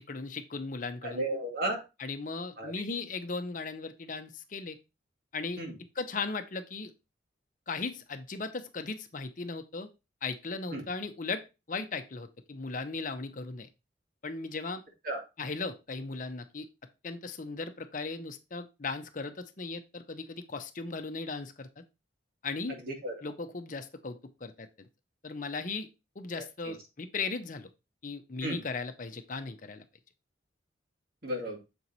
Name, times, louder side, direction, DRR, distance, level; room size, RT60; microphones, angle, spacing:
voice 1, 0.0-1.2 2.0-4.8 5.3-5.6 6.0-6.9 7.7-9.9 10.2-13.7 14.2-14.8 15.4-16.7 17.0-21.8 22.4-22.8 23.2-24.7 25.2-25.9 26.2-27.7 28.0-29.8, left 4 dB, 45° left, 8 dB, 0.7 m, -37 dB
voice 2, 1.0-1.8 2.6-2.7 5.6-5.7 10.7-10.8 15.0-15.2 22.7-23.1 26.3-26.7 28.4-28.6 31.2-31.6, right 1 dB, 50° right, 2 dB, 2.0 m, -34 dB
6.9 x 4.6 x 4.1 m, 0.27 s
head